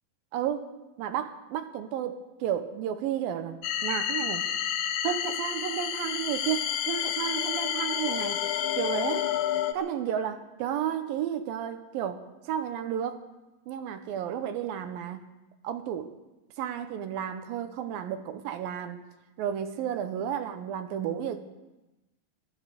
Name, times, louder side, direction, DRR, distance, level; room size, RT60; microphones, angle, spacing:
voice 1, 0.3-0.7 1.0-4.5 5.0-8.4 8.8-9.3 9.7-13.2 13.7-15.2 15.6-16.1 16.6-19.0 19.4-21.4, right 9 dB, 75° right, 9 dB, 2.5 m, -32 dB
sound 1, 3.6-9.7, left 10 dB, 80° left, 1.7 m, -30 dB
16.0 x 12.5 x 6.8 m, 1.0 s
omnidirectional pair, 4.4 m